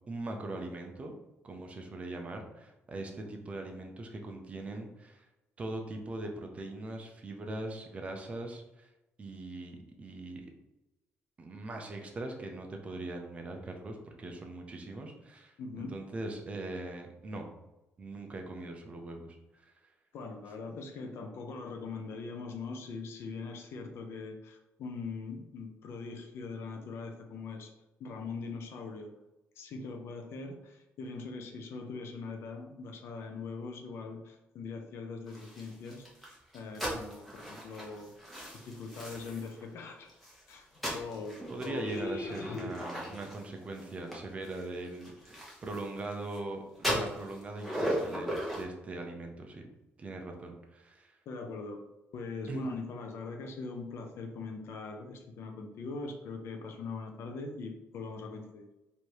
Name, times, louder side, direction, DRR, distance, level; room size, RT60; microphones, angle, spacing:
voice 1, 0.1-1.1 1.4-5.3 5.6-8.9 9.2-10.5 11.4-17.5 18.0-19.7 41.5-49.6 50.0-51.2 52.5-52.7, right 2 dB, 25° right, 3 dB, 0.6 m, -41 dB
voice 2, 15.6-16.0 20.1-27.7 28.0-29.1 29.6-36.1 36.5-38.1 38.5-40.1 40.5-40.7 40.9-42.7 51.3-51.8 52.1-58.7, left 4 dB, 65° left, 4 dB, 0.7 m, -41 dB
sound 1, 35.3-39.6 40.1-46.4 46.7-48.6, equal, ahead, 1.1 m, -38 dB
3.2 x 2.8 x 4.6 m, 0.99 s
cardioid pair, 155°, 5 cm